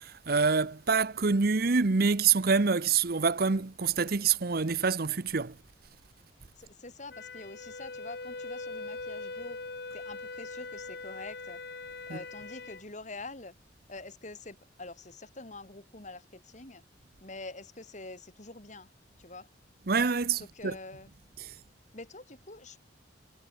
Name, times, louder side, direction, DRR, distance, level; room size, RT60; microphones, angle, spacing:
voice 1, 0.0-5.6 12.1-12.2 19.9-20.8 21.4-21.5, right 5 dB, 55° right, 0.8 m, -26 dB
voice 2, 6.6-9.6 9.9-11.6 12.1-13.5 13.9-16.8 17.2-18.9 19.2-19.5 20.4-21.1 21.5-21.6 21.9-22.8, left 2 dB, 40° left, 3.4 m, -45 dB
Wind instrument woodwind instrument, 7.1-12.8, left 3 dB, 60° left, 2.4 m, -41 dB
head